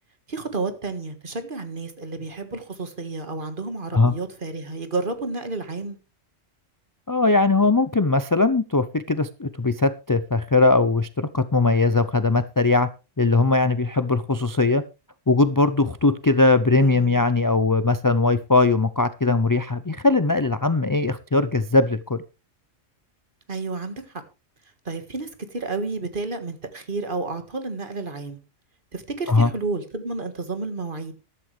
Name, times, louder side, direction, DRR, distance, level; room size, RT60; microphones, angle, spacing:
voice 1, 0.3-6.0 16.8-17.2 23.5-24.2 24.9-28.4 28.9-31.2, right 3 dB, 40° right, 1.8 m, -31 dB
voice 2, 7.1-12.9 13.2-14.8 15.3-22.2 29.3-29.5, left 3 dB, 35° left, 0.3 m, -20 dB
14.0 x 12.0 x 3.3 m
omnidirectional pair, 1.3 m